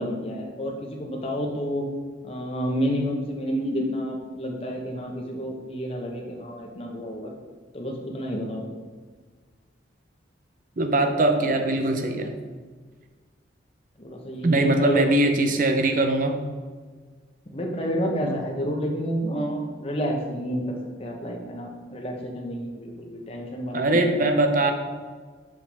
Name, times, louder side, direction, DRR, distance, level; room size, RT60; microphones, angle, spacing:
voice 1, 0.0-1.8 2.2-7.3 7.7-8.7 14.0-15.1 17.5-24.2, equal, 30° left, 1 dB, 0.9 m, -30 dB
voice 2, 10.8-12.3 14.4-16.4 18.2-18.4 23.7-24.7, right 2 dB, 45° right, 5 dB, 0.6 m, -21 dB
7.0 x 5.0 x 3.5 m, 1.5 s
head